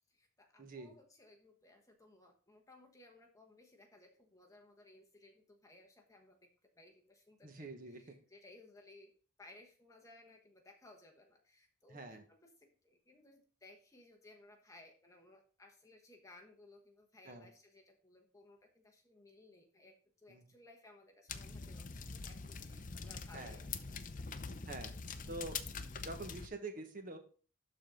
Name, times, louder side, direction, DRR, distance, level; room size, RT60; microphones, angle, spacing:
voice 1, 0.1-9.1 9.4-24.0, left 2 dB, 15° left, 2 dB, 1.2 m, -61 dB
voice 2, 0.6-0.9 7.4-8.1 11.9-12.2 17.2-17.5 20.3-20.4 23.3-23.6 24.7-24.9 25.3-25.6 26.0-27.2, right 2 dB, 40° right, 5 dB, 1.3 m, -46 dB
sound 1, 21.3-26.5, left 5 dB, 40° left, 0.6 m, -44 dB
12.0 x 4.2 x 3.9 m, 0.40 s
head